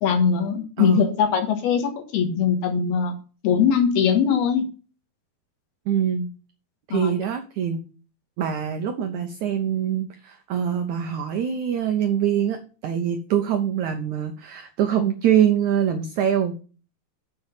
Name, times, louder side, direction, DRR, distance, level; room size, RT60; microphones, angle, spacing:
voice 1, 0.0-3.1 3.4-4.6 6.9-7.1, left 7 dB, 75° left, 5 dB, 3.5 m, -21 dB
voice 2, 0.8-1.1 5.9-6.3 6.9-7.8 8.4-16.6, right 9 dB, 80° right, 7 dB, 1.7 m, -24 dB
7.6 x 5.9 x 7.2 m, 0.36 s
omnidirectional pair, 4.6 m